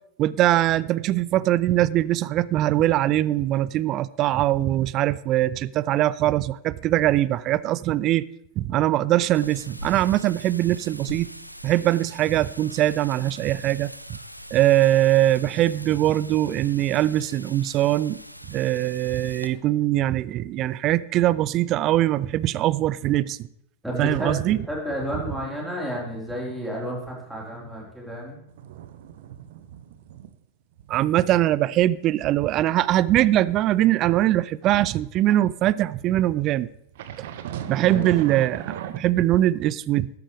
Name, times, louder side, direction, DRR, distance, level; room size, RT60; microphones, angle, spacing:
voice 1, 0.2-8.2 8.6-11.3 11.6-14.2 14.5-18.2 18.5-23.4 24.0-24.6 30.9-36.7 37.7-40.1, right 14 dB, 35° right, 0.4 m, -22 dB
Wind, 9.3-19.5, equal, 90° right, 0.6 m, -42 dB
voice 2, 23.8-24.4 24.7-28.4 37.8-38.0, equal, 5° right, 4.4 m, -31 dB
sound 1, 28.5-30.4 30.7-31.0 31.4-35.0 35.9-39.0, right 10 dB, 55° right, 0.7 m, -39 dB
13.5 x 12.5 x 3.4 m
figure-of-eight pair, 90°, 0 cm